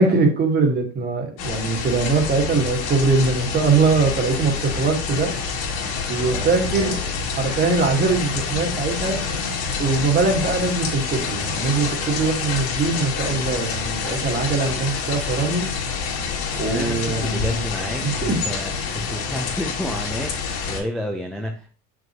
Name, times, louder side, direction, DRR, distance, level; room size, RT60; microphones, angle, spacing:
voice 1, 0.0-5.3 5.8-7.0 7.4-9.2 9.8-15.7 16.6-17.6 18.0-18.6, right 3 dB, 30° right, 3 dB, 1.7 m, -22 dB
sound 1, 1.4-20.8, left 5 dB, 75° left, 2.6 m, -27 dB
voice 2, 6.2-7.1 16.4-21.7, equal, ahead, 0 dB, 0.7 m, -31 dB
7.1 x 6.4 x 3.0 m, 0.38 s
cardioid pair, 145°, 32 cm